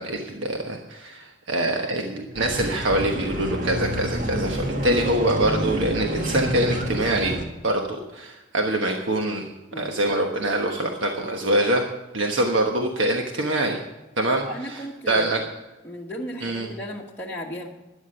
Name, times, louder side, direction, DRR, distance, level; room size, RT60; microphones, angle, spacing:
voice 1, 0.0-7.3 7.6-9.4 9.8-11.8 12.1-13.8 14.2-14.5 15.1-15.4 16.4-16.7, right 1 dB, 70° right, 2 dB, 1.3 m, -24 dB
sound 1, 2.3-7.4, equal, 40° right, 1.8 m, -28 dB
voice 2, 4.5-4.9 9.7-9.9 14.4-15.4 15.8-17.7, equal, 10° left, -4 dB, 1.3 m, -35 dB
13.0 x 10.5 x 5.7 m, 1.1 s
head